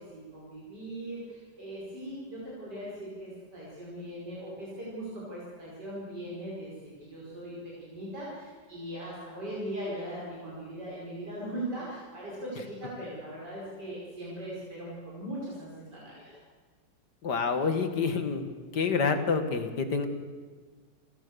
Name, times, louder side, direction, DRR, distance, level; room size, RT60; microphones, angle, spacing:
voice 1, 0.0-16.4, right 1 dB, 70° right, -6 dB, 6.0 m, -39 dB
voice 2, 17.2-18.5 18.7-20.1, left 5 dB, 70° left, 8 dB, 2.4 m, -27 dB
29.5 x 15.0 x 6.9 m, 1.5 s
omnidirectional pair, 1.9 m